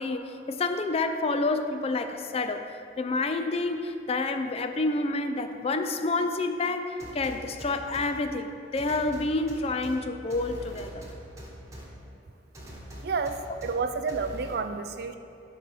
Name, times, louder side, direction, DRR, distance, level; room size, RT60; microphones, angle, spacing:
voice 1, 0.0-2.7 3.0-11.1, left 3 dB, 35° left, 8 dB, 0.4 m, -29 dB
sound 1, 7.0-8.1 8.8-10.0 10.3-11.8 12.5-13.7 14.1-14.6, equal, 15° right, 1.3 m, -42 dB
voice 2, 13.0-15.2, right 4 dB, 60° right, 9 dB, 0.4 m, -30 dB
11.0 x 3.9 x 5.6 m, 2.7 s
head